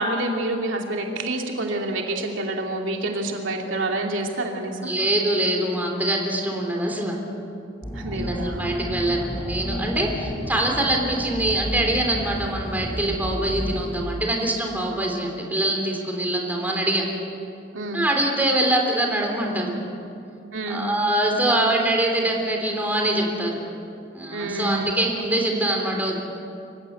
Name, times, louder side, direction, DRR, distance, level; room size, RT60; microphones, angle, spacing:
voice 1, 0.0-4.9 7.9-9.0 17.7-18.0 20.5-20.9 24.3-25.0, right 2 dB, 85° right, 1 dB, 2.7 m, -28 dB
voice 2, 4.8-7.2 8.1-17.0 17.9-19.8 20.7-23.6 24.1-26.2, right 1 dB, 10° right, 0 dB, 3.5 m, -24 dB
sound 1, 7.8-14.0, equal, 15° left, 2.4 m, -32 dB
26.0 x 16.0 x 8.3 m, 2.5 s
head